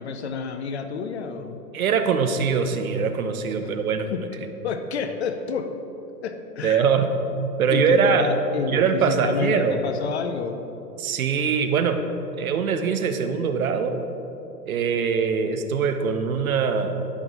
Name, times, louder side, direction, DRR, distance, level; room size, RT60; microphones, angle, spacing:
voice 1, 0.0-1.6 3.6-3.7 4.1-4.2 4.6-5.7 6.2-6.9 7.7-10.6, left 5 dB, 45° left, 7 dB, 0.5 m, -29 dB
voice 2, 1.7-4.1 6.6-7.1 7.6-8.3 8.7-9.8 11.0-12.0 12.4-14.0 14.7-16.9, right 6 dB, 60° right, 7 dB, 0.8 m, -22 dB
9.7 x 6.0 x 3.8 m, 3.0 s
figure-of-eight pair, 110°, 49 cm